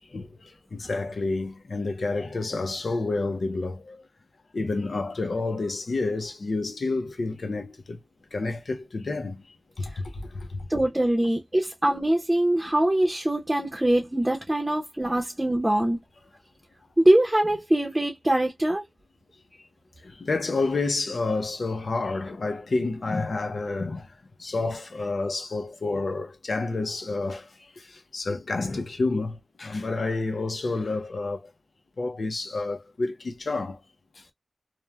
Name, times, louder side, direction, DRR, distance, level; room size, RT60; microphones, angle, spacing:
voice 1, 0.7-4.0 4.5-8.0 8.3-9.4 10.0-10.1 10.3-10.6 15.0-15.1 20.2-24.1 24.4-27.4 28.1-31.4 32.0-33.8, left 3 dB, 80° left, 0.6 m, -29 dB
voice 2, 10.7-16.0 17.0-18.8, right 1 dB, 20° right, 0.7 m, -23 dB
3.0 x 2.1 x 2.2 m
wide cardioid pair, 75°, 0 cm